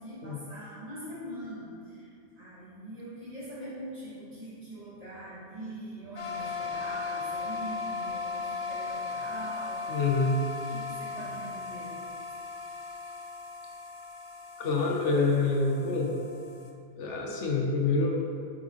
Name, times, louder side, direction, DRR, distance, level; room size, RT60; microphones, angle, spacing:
voice 1, 0.0-2.1 2.4-9.8 10.7-11.9, right 1 dB, 35° right, -10 dB, 1.1 m, -42 dB
sound 1, 6.2-16.7, left 4 dB, 45° left, 0.4 m, -37 dB
voice 2, 9.9-10.4 14.6-16.1 17.0-18.3, left 3 dB, 80° left, 0 dB, 1.1 m, -26 dB
8.3 x 3.5 x 3.5 m, 2.5 s
omnidirectional pair, 1.2 m